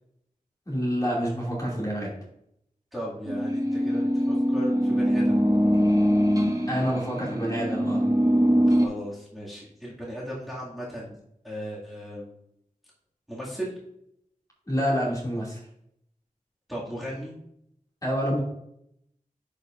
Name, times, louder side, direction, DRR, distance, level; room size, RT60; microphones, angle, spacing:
voice 1, 0.7-2.1 6.7-8.0 14.7-15.6 18.0-18.4, equal, 25° left, -5 dB, 2.5 m, -27 dB
voice 2, 2.9-5.4 8.7-11.2 11.4-12.3 13.3-13.7 16.7-17.3, equal, ahead, -7 dB, 2.3 m, -36 dB
sound 1, 3.3-8.9, equal, 25° right, 1.0 m, -23 dB
10.5 x 5.1 x 2.6 m, 0.76 s
wide cardioid pair, 55°, 14 cm